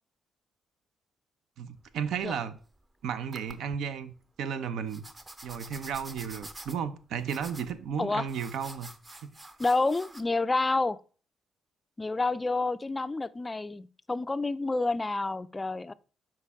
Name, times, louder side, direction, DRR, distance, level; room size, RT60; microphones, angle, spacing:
voice 1, 1.6-2.6 3.0-5.0 5.4-8.9 9.2-9.4, right 7 dB, 80° right, 0.5 m, -34 dB
sound 1, 1.8-2.8 3.3-3.8 4.9-10.2, right 1 dB, 20° right, 0.6 m, -47 dB
voice 2, 9.6-11.0 12.0-15.9, left 3 dB, 20° left, 0.3 m, -29 dB
6.5 x 4.4 x 3.5 m
cardioid pair, 90°, 0 cm